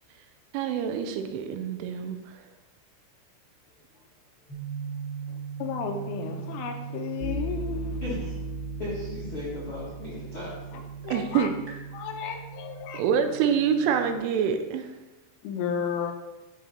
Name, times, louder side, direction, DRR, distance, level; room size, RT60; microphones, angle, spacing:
voice 1, 0.5-2.4 11.1-11.5 12.9-14.9, right 7 dB, 80° right, 7 dB, 3.0 m, -26 dB
sound 1, 4.5-14.2, right 4 dB, 25° right, 1.8 m, -37 dB
voice 2, 5.3-8.0 10.7-11.5 11.9-13.0 15.4-16.1, left 7 dB, 80° left, 4 dB, 3.4 m, -33 dB
voice 3, 8.0-8.3 8.8-10.8, left 2 dB, 60° left, -9 dB, 1.3 m, -36 dB
11.0 x 5.6 x 4.4 m, 1.1 s
omnidirectional pair, 5.8 m